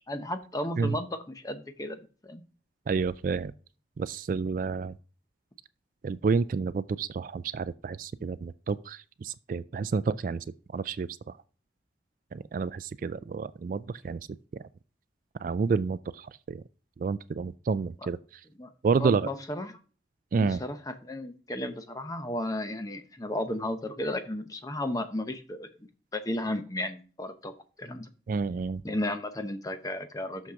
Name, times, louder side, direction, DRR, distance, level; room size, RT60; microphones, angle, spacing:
voice 1, 0.0-2.4 18.0-18.1 18.6-18.7 19.0-19.7 20.4-25.7 26.1-27.5 27.8-28.1 28.8-30.5, left 1 dB, 20° left, 0.8 m, -34 dB
voice 2, 2.9-3.5 4.0-4.9 6.0-10.4 10.7-11.4 12.3-14.2 14.5-14.6 15.4-16.6 17.0-18.4 18.8-19.3 20.3-20.6 28.3-28.8, right 5 dB, 45° right, 0.3 m, -29 dB
6.5 x 6.0 x 5.7 m
head